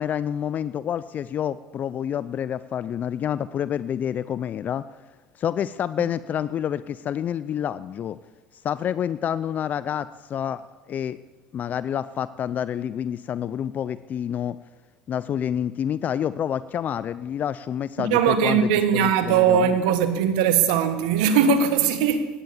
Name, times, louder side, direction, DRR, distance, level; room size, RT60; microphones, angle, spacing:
voice 1, 0.0-4.8 5.3-8.2 8.5-10.6 10.9-11.2 11.5-14.6 15.1-19.8, left 9 dB, 45° left, 0.4 m, -28 dB
voice 2, 18.0-22.3, right 7 dB, 85° right, 1.6 m, -20 dB
17.0 x 10.5 x 7.2 m
supercardioid pair, 90°, 4 cm